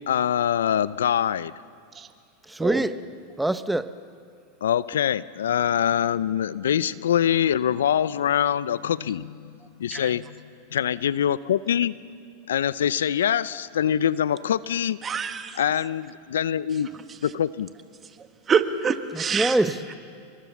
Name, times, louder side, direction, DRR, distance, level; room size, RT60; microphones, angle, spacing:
voice 1, 0.0-1.5 4.6-9.5 9.8-10.4 10.7-12.0 12.5-15.0 15.6-16.9 17.2-17.7, left 9 dB, 85° left, 0.6 m, -24 dB
voice 2, 2.4-3.0 3.4-3.9 19.1-19.9, right 1 dB, 5° right, 0.9 m, -25 dB
voice 3, 15.0-15.6 18.5-19.5, right 6 dB, 25° right, 1.7 m, -25 dB
29.5 x 24.0 x 7.2 m
hypercardioid pair, 115°, 0 cm